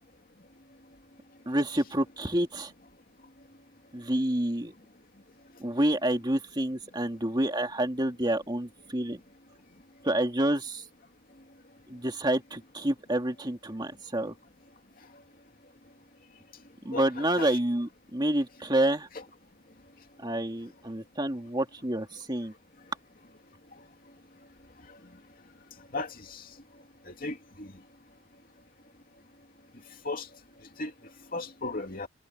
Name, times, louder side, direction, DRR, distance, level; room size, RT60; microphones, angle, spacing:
voice 1, 1.5-2.7 3.9-4.7 5.6-9.2 10.0-10.8 11.9-14.3 16.8-19.1 20.2-22.5, right 1 dB, 20° right, 2.4 m, -28 dB
voice 2, 25.9-26.4 27.2-27.7 30.0-30.3 30.8-30.9 31.3-32.1, left 2 dB, 45° left, 2.8 m, -35 dB
head